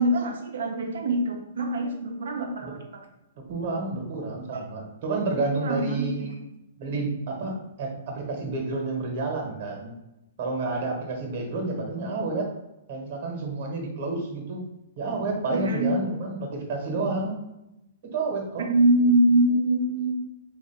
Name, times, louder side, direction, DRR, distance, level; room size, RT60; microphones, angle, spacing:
voice 1, 0.0-2.8 4.5-4.7 5.6-6.1 15.5-15.9 18.7-20.1, right 1 dB, 75° right, 3 dB, 0.7 m, -23 dB
voice 2, 3.5-6.3 6.8-9.9 10.4-12.5 12.9-14.6 15.0-17.4 18.0-18.7, right 3 dB, 50° right, 2 dB, 1.1 m, -30 dB
3.0 x 2.5 x 4.3 m, 0.89 s
hypercardioid pair, 140°, 0 cm